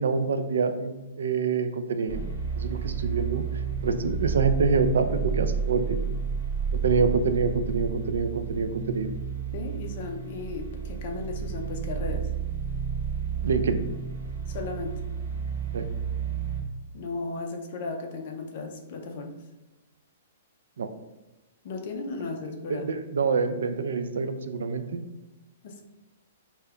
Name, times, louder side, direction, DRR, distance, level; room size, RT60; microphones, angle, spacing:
voice 1, 0.0-2.2 2.6-3.4 3.8-6.0 6.7-9.1 13.4-13.8 15.7-15.9 20.8-20.9 22.7-25.0, right 4 dB, 90° right, 8 dB, 0.3 m, -26 dB
sound 1, 2.1-16.6, right 6 dB, 65° right, 1.0 m, -31 dB
voice 2, 9.5-12.3 14.5-15.0 16.9-19.4 21.6-22.9 25.6-25.8, left 3 dB, 35° left, 3 dB, 0.4 m, -35 dB
5.0 x 2.2 x 2.2 m, 1.0 s
hypercardioid pair, 175°, 0 cm